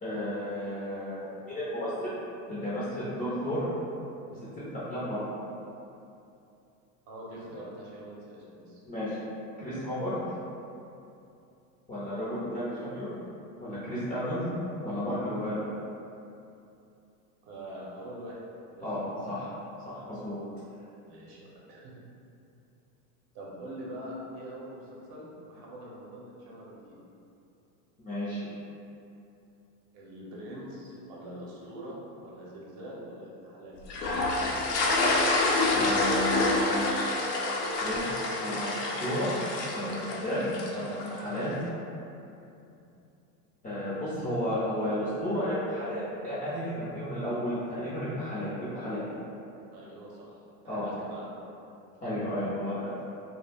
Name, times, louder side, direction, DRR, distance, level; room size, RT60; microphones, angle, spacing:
voice 1, 0.0-2.1 2.5-3.7 4.6-5.2 8.8-9.2 9.6-10.2 11.9-13.1 13.6-14.4 14.8-15.6 18.8-19.5 19.9-20.4 28.0-28.5 35.7-36.9 37.8-39.3 39.7-41.6 43.6-49.0 50.7-50.9 52.0-52.9, equal, 20° left, -11 dB, 0.4 m, -33 dB
voice 2, 7.1-8.8 17.4-18.4 18.7-19.3 21.1-21.9 23.3-27.0 29.9-33.8 42.4-42.6 49.7-51.4, right 1 dB, 50° right, -5 dB, 0.8 m, -44 dB
sound 1, 33.9-41.2, left 2 dB, 80° left, 0.6 m, -27 dB
2.2 x 2.0 x 3.3 m, 2.7 s
supercardioid pair, 115°, 47 cm